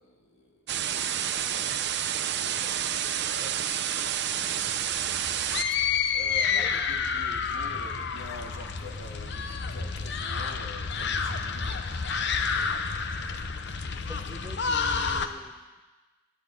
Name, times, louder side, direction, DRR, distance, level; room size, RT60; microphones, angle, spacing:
voice 1, 0.0-3.6 4.0-5.0 5.7-5.8 6.1-14.2 15.2-15.5, left 1 dB, 80° left, 2 dB, 2.1 m, -48 dB
sound 1, 0.7-5.6, right 9 dB, 60° right, 0.7 m, -29 dB
sound 2, 4.6-15.3, left 5 dB, 60° left, 0.8 m, -29 dB
voice 2, 14.0-15.8, equal, 10° right, 6 dB, 0.7 m, -46 dB
11.0 x 10.0 x 8.4 m, 1.3 s
head